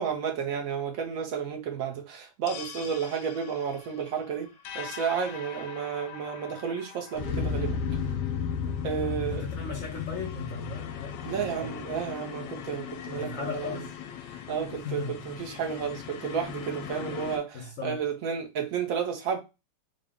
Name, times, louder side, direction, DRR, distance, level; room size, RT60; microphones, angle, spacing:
voice 1, 0.0-4.5 4.7-7.8 8.8-9.4 11.2-13.8 14.3-19.4, right 7 dB, 55° right, 1.1 m, -32 dB
sound 1, 2.5-17.4, left 6 dB, 85° left, 1.3 m, -36 dB
voice 2, 9.0-11.7 13.1-13.9 14.7-15.2 17.0-17.1 17.5-18.0, left 4 dB, 60° left, 0.8 m, -37 dB
3.8 x 2.2 x 3.5 m
omnidirectional pair, 2.0 m